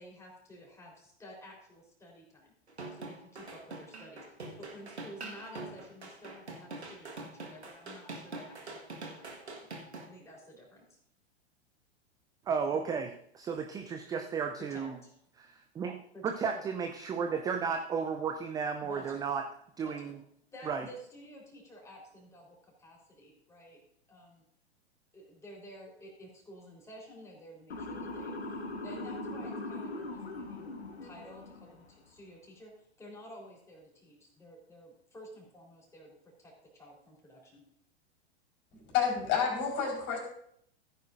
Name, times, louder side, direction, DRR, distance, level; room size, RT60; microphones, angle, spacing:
voice 1, 0.0-2.5 2.9-9.6 10.1-11.0 12.7-12.8 14.6-15.2 16.1-16.7 18.8-19.3 19.8-20.1 20.5-23.8 24.1-24.4 25.1-28.3 28.8-30.8 31.0-32.7 33.0-37.6, equal, 10° left, -2 dB, 4.0 m, -52 dB
sound 1, 2.7-10.1, right 3 dB, 80° right, 1.7 m, -44 dB
voice 2, 12.5-13.1 13.3-15.0 15.4-15.9 16.2-19.4 19.8-20.2 20.7-20.9, right 6 dB, 10° right, 5 dB, 0.5 m, -33 dB
Motor vehicle (road) / Siren, 27.7-31.8, left 2 dB, 70° left, 1.6 m, -40 dB
voice 3, 38.7-40.2, left 7 dB, 35° left, -1 dB, 4.5 m, -30 dB
15.5 x 9.3 x 2.6 m, 0.68 s
figure-of-eight pair, 100°, 32 cm